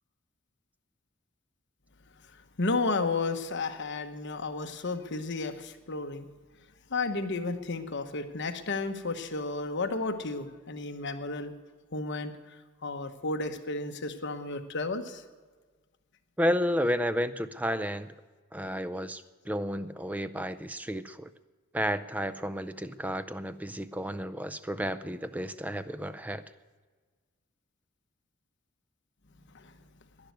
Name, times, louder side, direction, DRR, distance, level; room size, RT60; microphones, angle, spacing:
voice 1, 2.6-6.3 6.9-11.5 11.9-12.3 12.8-15.2 29.5-29.7, left 3 dB, 55° left, 7 dB, 1.1 m, -32 dB
voice 2, 16.4-18.1 18.5-21.3 21.7-26.4, equal, 5° right, 13 dB, 0.4 m, -32 dB
11.5 x 10.5 x 9.3 m, 1.4 s
head